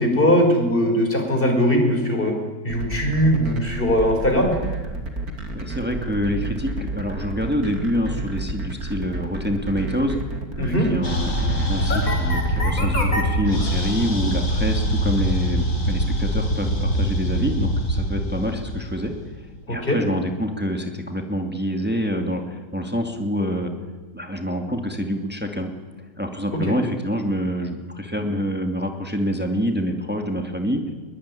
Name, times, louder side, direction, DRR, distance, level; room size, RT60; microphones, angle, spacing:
voice 1, 0.0-2.3 2.6-4.5 10.6-10.9 19.7-20.0 26.6-26.7, equal, 35° left, 3 dB, 5.6 m, -20 dB
sound 1, 2.7-13.2, right 2 dB, 70° right, 3.4 m, -31 dB
voice 2, 5.5-10.2 10.6-19.2 19.7-23.7 24.1-25.7 26.2-30.8, equal, 5° right, 4 dB, 2.4 m, -26 dB
sound 2, 11.0-19.6, equal, 60° left, 5.2 m, -23 dB
22.0 x 21.0 x 9.9 m, 1.4 s
omnidirectional pair, 1.6 m